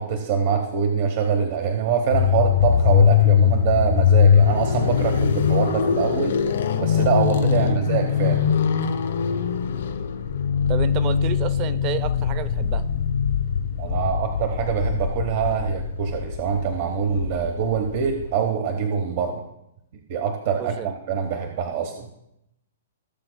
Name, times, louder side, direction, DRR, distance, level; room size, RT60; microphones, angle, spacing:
voice 1, 0.0-6.3 6.8-8.5 13.8-19.4 20.1-22.1, right 7 dB, 45° right, 4 dB, 1.0 m, -24 dB
sound 1, 2.1-18.3, left 8 dB, 75° left, 1.4 m, -21 dB
voice 2, 10.7-12.9 20.6-20.9, right 10 dB, 30° right, 14 dB, 0.6 m, -30 dB
17.0 x 6.9 x 2.2 m, 0.81 s
hypercardioid pair, 155°, 0 cm